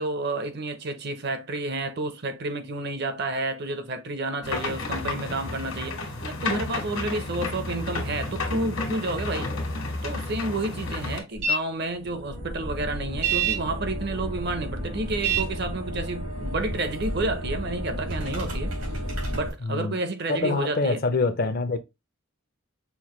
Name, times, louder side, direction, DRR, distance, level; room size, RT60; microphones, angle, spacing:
voice 1, 0.0-9.5 10.0-18.7 19.3-21.0, right 2 dB, 50° right, 0.6 m, -30 dB
sound 1, 4.4-11.2, left 2 dB, 80° left, 1.5 m, -31 dB
sound 2, 11.4-11.6 12.0-19.5, right 2 dB, 85° right, 2.6 m, -30 dB
voice 2, 19.6-20.0 20.3-21.8, left 3 dB, 45° left, 0.5 m, -25 dB
5.7 x 2.5 x 2.9 m
head